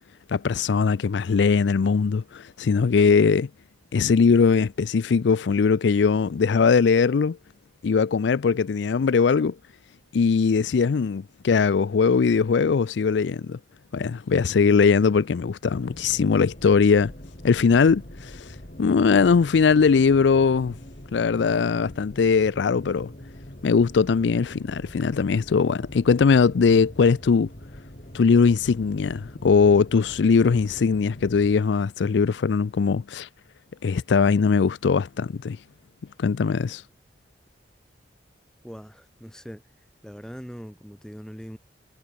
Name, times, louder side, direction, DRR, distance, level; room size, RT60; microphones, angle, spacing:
voice 1, 0.3-3.5 3.9-7.4 7.8-9.6 10.1-13.6 13.9-17.1 17.4-20.7 21.1-23.1 23.6-27.5 28.1-33.3 33.8-35.6 36.2-36.8, left 5 dB, 75° left, 0.4 m, -20 dB
sound 1, 15.9-31.5, equal, 45° left, 3.8 m, -43 dB
voice 2, 38.6-39.6 40.0-41.6, equal, 5° left, 6.9 m, -41 dB
head